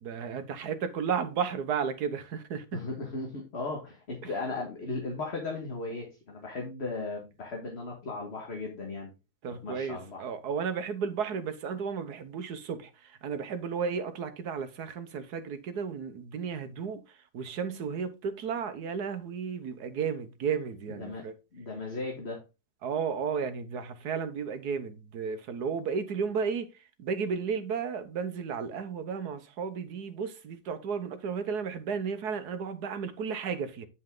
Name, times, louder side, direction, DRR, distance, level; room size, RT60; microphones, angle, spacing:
voice 1, 0.0-2.8 9.4-17.0 17.3-21.3 22.8-26.7 27.0-33.9, right 6 dB, 80° right, 1.5 m, -33 dB
voice 2, 2.7-9.1 9.5-10.3 20.9-21.2 21.5-22.4, left 3 dB, 40° left, 1.9 m, -36 dB
9.4 x 5.5 x 3.8 m
omnidirectional pair, 1.7 m